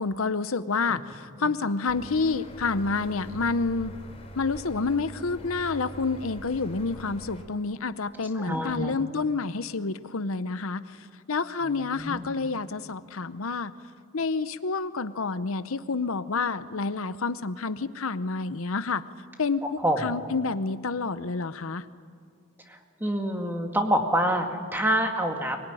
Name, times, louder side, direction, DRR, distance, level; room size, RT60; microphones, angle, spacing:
voice 1, 0.0-3.9 4.4-10.8 11.3-13.7 14.1-19.0 19.4-19.6 20.0-21.8, left 4 dB, 75° left, 13 dB, 0.8 m, -28 dB
sound 1, 1.9-7.4, equal, 25° left, 4.6 m, -43 dB
voice 2, 8.3-8.9 11.6-12.3 19.8-20.1 22.7-25.6, equal, 10° right, 3 dB, 2.1 m, -27 dB
24.0 x 21.5 x 9.9 m, 2.3 s
head